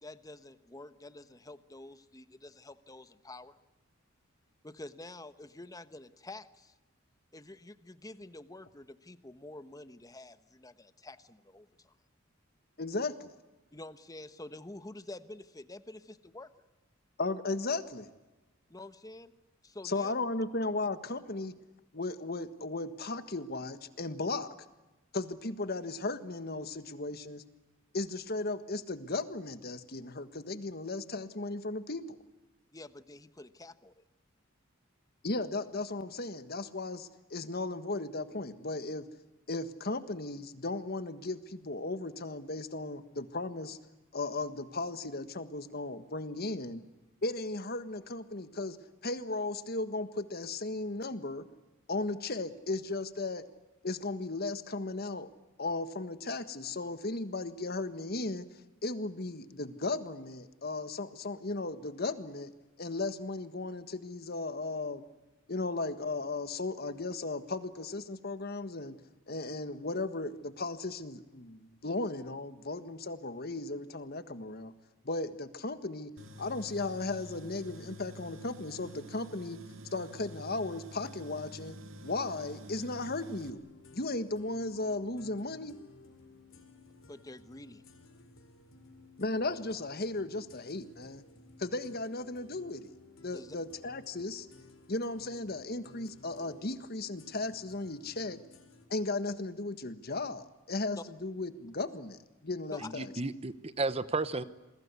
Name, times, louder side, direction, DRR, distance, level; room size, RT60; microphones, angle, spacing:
voice 1, 0.0-3.5 4.6-6.7 7.3-12.0 13.7-16.5 18.7-19.3 19.6-20.1 32.7-34.0 87.1-87.8 93.3-93.6 100.9-101.0 102.7-102.9, left 2 dB, 20° left, 12 dB, 1.1 m, -48 dB
voice 2, 12.8-13.3 17.2-18.1 19.8-21.5 21.9-24.5 25.1-27.4 27.9-32.2 35.2-39.1 39.5-43.8 44.1-46.8 47.2-48.8 49.0-51.4 51.9-53.4 53.8-55.3 55.6-58.5 58.8-62.5 62.8-65.0 65.5-69.0 69.3-74.7 75.0-76.1 76.4-79.6 79.9-81.8 82.0-83.6 83.9-85.7 89.2-91.2 91.6-92.9 93.2-94.5 94.9-98.4 98.9-103.1, left 2 dB, 50° left, 11 dB, 1.6 m, -36 dB
Tools, 76.2-83.5, equal, 75° right, 2.5 m, -48 dB
sound 1, 83.5-98.9, left 3 dB, 75° left, 4.2 m, -57 dB
voice 3, 102.8-104.4, right 3 dB, 30° right, 13 dB, 1.0 m, -33 dB
28.5 x 21.5 x 8.3 m, 1.1 s
head